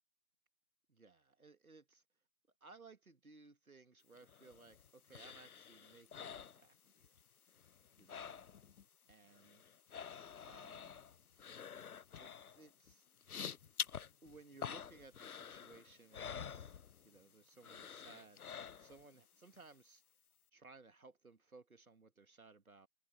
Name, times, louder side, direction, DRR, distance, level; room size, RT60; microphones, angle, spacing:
voice 1, 0.9-2.0 2.6-7.1 8.0-8.5 9.1-9.6 10.5-11.0 12.2-13.1 14.2-16.8 17.0-18.4 18.8-20.0 20.5-22.9, right 3 dB, 75° right, 2.0 m, -61 dB
sound 1, 4.2-7.2 7.5-8.8 9.1-17.3 17.6-19.1 19.5-19.6, left 7 dB, 85° left, 0.6 m, -48 dB
figure-of-eight pair, 165°, 43 cm